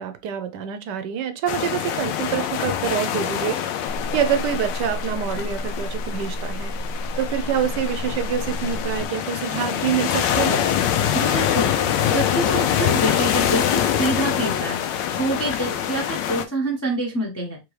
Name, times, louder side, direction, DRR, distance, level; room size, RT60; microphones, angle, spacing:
voice 1, 0.0-6.7 7.2-10.6, right 9 dB, 75° right, 1.2 m, -26 dB
sound 1, 1.5-16.4, left 9 dB, 90° left, 1.3 m, -24 dB
sound 2, 3.9-9.1, equal, 65° left, 1.4 m, -31 dB
voice 2, 11.1-11.7 12.1-14.8 15.1-17.6, right 2 dB, 15° left, 0.5 m, -26 dB
3.7 x 3.4 x 3.1 m
omnidirectional pair, 1.9 m